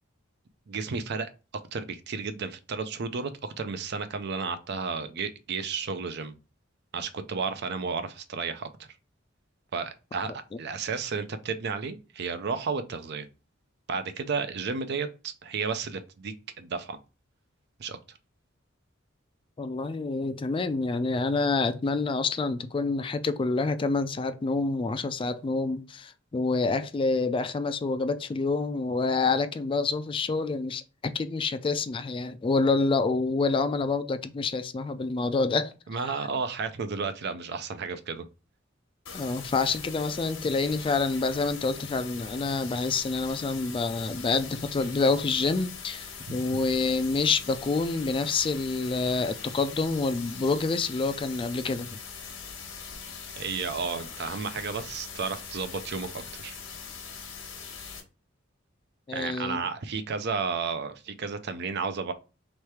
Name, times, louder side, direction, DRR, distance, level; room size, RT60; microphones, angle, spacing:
voice 1, 0.7-1.3 1.7-6.3 6.9-8.9 9.7-13.3 13.9-17.0 17.8-18.0 35.9-38.3 46.3-46.4 53.4-56.6 59.1-62.1, right 5 dB, 55° right, 0.5 m, -32 dB
voice 2, 19.6-35.7 39.1-51.9 59.1-59.6, left 3 dB, 25° left, 0.3 m, -27 dB
sound 1, 39.1-58.0, left 6 dB, 85° left, 1.1 m, -42 dB
3.3 x 3.1 x 4.7 m
head